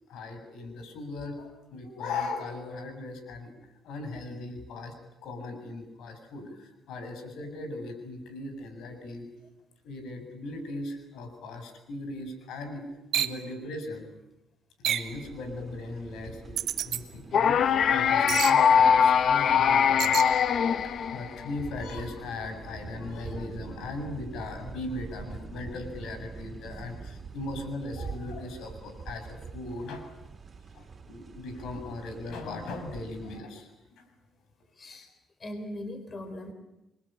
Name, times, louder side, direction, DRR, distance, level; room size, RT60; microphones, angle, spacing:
voice 1, 0.1-3.5 3.8-4.9 5.2-9.3 9.8-12.8 13.1-14.1 14.8-20.2 20.4-30.0 30.7-33.7 34.0-34.1, left 2 dB, 80° left, 7 dB, 7.1 m, -38 dB
sound 1, 13.1-13.4 14.8-15.2 16.6-17.0 18.3-18.6 20.0-20.3, right 11 dB, 75° right, 1.8 m, -29 dB
sound 2, 15.1-33.4, right 5 dB, 40° right, 3.7 m, -45 dB
sound 3, 17.3-21.5, left 7 dB, 60° left, 1.2 m, -22 dB
voice 2, 34.8-35.1 35.4-36.5, left 1 dB, 35° left, 9 dB, 4.0 m, -40 dB
28.5 x 23.5 x 8.9 m, 0.91 s
cardioid pair, 90°, 0 cm